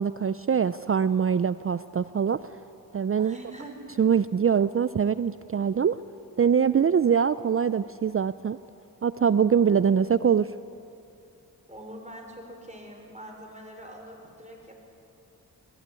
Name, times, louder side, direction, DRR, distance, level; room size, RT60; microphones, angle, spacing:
voice 1, 0.0-2.4 2.9-3.4 4.0-6.0 6.4-8.6 9.0-10.5, right 7 dB, 35° right, 15 dB, 0.5 m, -23 dB
voice 2, 3.2-3.8 11.7-14.9, right 1 dB, 15° right, 1 dB, 5.3 m, -44 dB
20.0 x 15.0 x 9.7 m, 2.7 s
cardioid pair, 45°, 40 cm